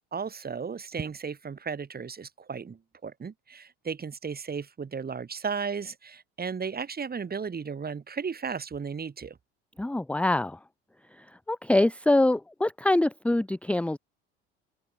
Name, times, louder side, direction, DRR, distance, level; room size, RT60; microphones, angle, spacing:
voice 1, 0.1-9.4, right 6 dB, 30° right, 5.1 m, -35 dB
voice 2, 9.8-10.6 11.1-14.0, left 2 dB, 5° left, 0.8 m, -25 dB
hypercardioid pair, 75°, 31 cm